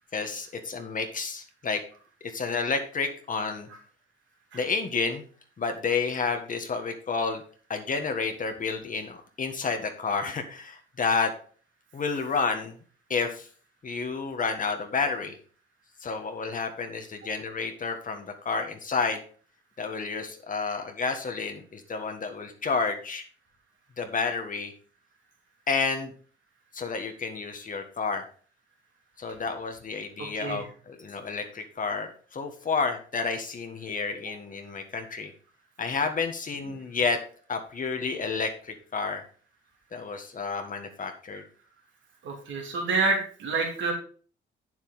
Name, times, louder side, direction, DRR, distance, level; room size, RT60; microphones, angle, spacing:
voice 1, 0.1-1.8 2.2-3.7 4.5-5.2 5.6-7.4 7.7-11.3 11.9-12.8 13.1-13.5 13.8-15.4 16.0-19.2 19.8-23.2 24.0-24.7 25.7-26.1 26.7-28.2 29.2-35.3 35.8-37.2 37.5-39.2 39.9-41.4, left 4 dB, 40° left, 5 dB, 1.5 m, -30 dB
voice 2, 30.2-30.6 42.2-43.9, right 3 dB, 70° right, 0 dB, 2.8 m, -28 dB
8.3 x 7.4 x 4.0 m, 0.42 s
cardioid pair, 90°, 20 cm